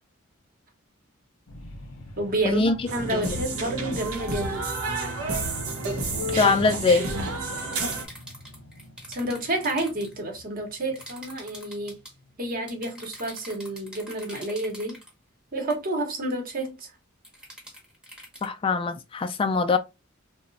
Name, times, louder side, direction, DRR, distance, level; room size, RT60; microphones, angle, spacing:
sound 1, 1.5-14.1 14.6-14.7, left 1 dB, 75° left, 0.7 m, -44 dB
voice 1, 2.2-4.7 9.1-12.0 12.4-15.0 15.5-16.9, right 1 dB, 45° right, 0.8 m, -30 dB
sound 2, 2.9-8.0, right 2 dB, 85° right, 0.8 m, -30 dB
voice 2, 6.3-7.0 18.4-19.8, left 4 dB, 25° left, 0.3 m, -22 dB
sound 3, 7.6-10.1 10.9-12.1 12.7-15.1 15.7-15.9 17.2-18.5, equal, 5° right, 0.8 m, -45 dB
2.9 x 2.1 x 2.5 m
head